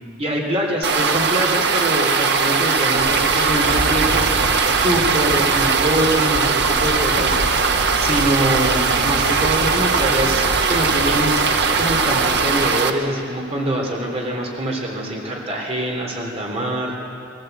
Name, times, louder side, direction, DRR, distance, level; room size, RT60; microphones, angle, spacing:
voice 1, 0.2-7.3 8.0-11.3 11.7-17.0, right 1 dB, 35° right, 0 dB, 3.4 m, -24 dB
sound 1, 0.8-12.9, right 5 dB, 60° right, 1.3 m, -19 dB
sound 2, 3.0-12.7, right 1 dB, 80° right, 2.2 m, -29 dB
22.0 x 17.5 x 8.1 m, 2.5 s
head